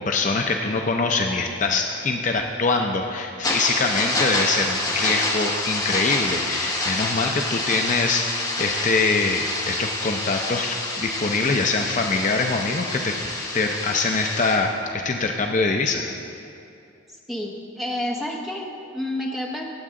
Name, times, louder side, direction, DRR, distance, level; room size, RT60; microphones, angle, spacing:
voice 1, 0.0-13.2 13.5-16.1, left 3 dB, 35° left, 3 dB, 0.5 m, -24 dB
sound 1, 3.4-14.6, left 2 dB, 20° left, 1.2 m, -27 dB
voice 2, 17.3-19.6, left 1 dB, ahead, -2 dB, 1.0 m, -29 dB
17.5 x 7.8 x 3.7 m, 2.6 s
head